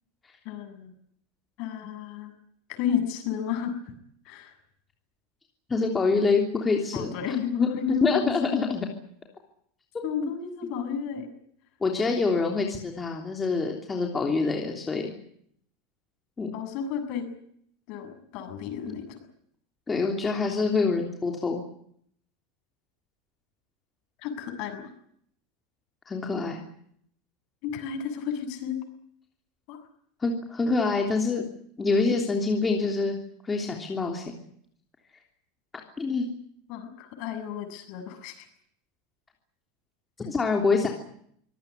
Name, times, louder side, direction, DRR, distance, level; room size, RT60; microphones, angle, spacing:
voice 1, 0.5-0.9 1.6-2.3 2.7-3.7 4.3-4.5 6.9-8.6 10.0-11.3 16.5-17.3 17.9-19.2 24.2-24.9 27.6-28.8 29.7-29.8 36.7-38.5, left 8 dB, 50° left, 8 dB, 7.2 m, -32 dB
voice 2, 5.7-7.7 8.0-8.8 10.2-10.3 11.8-15.1 16.4-16.5 19.9-21.6 26.1-26.6 30.2-31.4 31.8-33.2 33.4-34.4 36.0-36.3 40.2-40.9, left 4 dB, 15° left, 1 dB, 3.2 m, -26 dB
25.0 x 17.5 x 9.8 m, 0.67 s
supercardioid pair, 155°, 0 cm